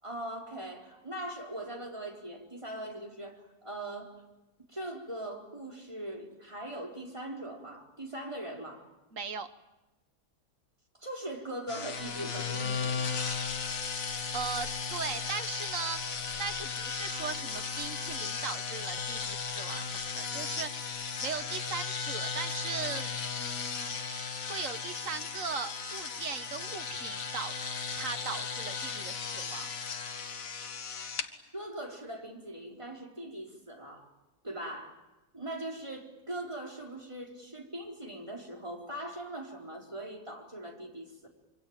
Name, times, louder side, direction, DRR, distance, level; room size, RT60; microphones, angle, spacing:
voice 1, 0.0-4.2 4.7-8.8 11.0-13.1 31.5-34.1 34.4-35.0 35.3-41.3, right 1 dB, 20° right, 0 dB, 4.3 m, -41 dB
voice 2, 9.1-9.5 14.3-23.9 24.5-27.5 28.0-29.7, right 5 dB, 60° right, 9 dB, 1.7 m, -39 dB
sound 1, 11.7-31.3, left 5 dB, 65° left, 1.8 m, -36 dB
26.5 x 24.5 x 9.0 m, 1.0 s
omnidirectional pair, 1.6 m